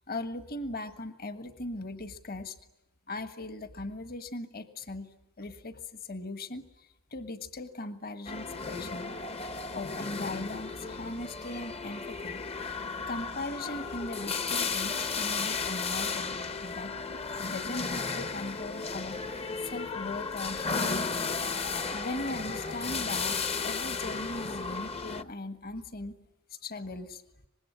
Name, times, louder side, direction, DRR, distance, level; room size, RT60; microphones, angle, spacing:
voice 1, 0.1-2.6 3.1-9.1 9.7-12.4 13.1-16.9 17.4-19.2 19.6-21.3 21.9-26.1 26.5-27.2, left 2 dB, 45° left, 10 dB, 1.5 m, -39 dB
sound 1, 8.3-25.2, left 4 dB, 30° left, 0.9 m, -34 dB
25.0 x 20.5 x 9.8 m, 0.93 s
head